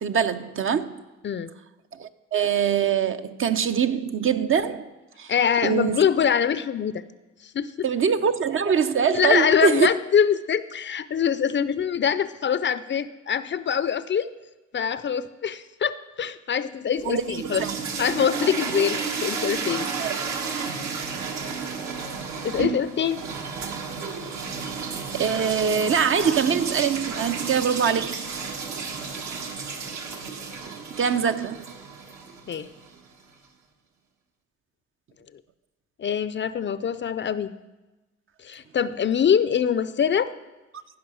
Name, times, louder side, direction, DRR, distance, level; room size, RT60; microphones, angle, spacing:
voice 1, 0.0-1.0 1.9-4.9 5.2-5.3 5.6-6.0 7.8-9.9 17.0-17.7 20.0-20.2 24.2-24.4 25.1-28.3 31.0-31.6, right 7 dB, 45° right, 0.6 m, -23 dB
voice 2, 5.3-7.0 7.5-7.7 9.1-14.3 14.7-17.6 18.0-19.9 22.4-23.2 32.5-32.7 36.0-37.5 38.4-40.3, left 8 dB, 40° left, 0.5 m, -24 dB
sound 1, 17.0-33.0, right 5 dB, 65° right, 1.6 m, -32 dB
15.0 x 5.6 x 6.2 m
cardioid pair, 90°, 30 cm